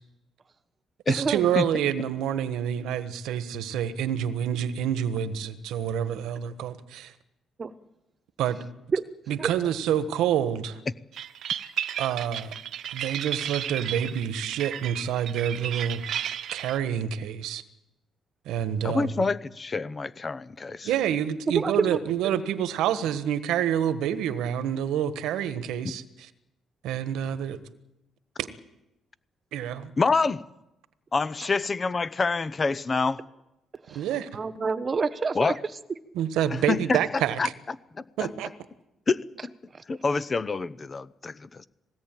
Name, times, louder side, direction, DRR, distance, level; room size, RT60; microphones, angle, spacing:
voice 1, 1.1-7.1 8.4-8.6 9.3-10.8 12.0-12.5 12.9-16.0 16.5-17.6 18.4-19.3 20.8-26.3 26.8-27.6 28.4-28.5 29.5-29.9 33.9-34.3 36.1-37.4 38.2-38.5, right 9 dB, 90° right, 1.4 m, -27 dB
pitched small bells, 11.1-16.8, right 10 dB, 70° right, 1.0 m, -33 dB
voice 2, 18.8-20.9 30.0-30.4 31.1-33.2 35.3-35.6 36.5-37.0 37.4-37.5 38.0-38.1 39.1-39.5 39.9-41.7, left 4 dB, 35° left, 0.8 m, -26 dB
voice 3, 21.5-22.0 33.9-34.1 34.3-35.5 39.7-39.8, right 5 dB, 35° right, 1.2 m, -27 dB
21.0 x 17.5 x 9.1 m
cardioid pair, 90°, 0 cm